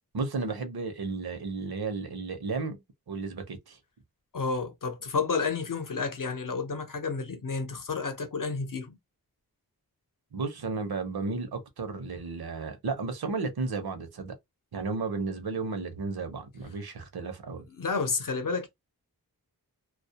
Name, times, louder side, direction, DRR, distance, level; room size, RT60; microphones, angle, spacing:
voice 1, 0.1-3.8 10.3-14.3 14.7-17.7, right 4 dB, 75° right, 0.8 m, -33 dB
voice 2, 4.3-9.0 17.7-18.7, left 4 dB, 55° left, 0.7 m, -31 dB
2.3 x 2.0 x 2.7 m
wide cardioid pair, 70°, 38 cm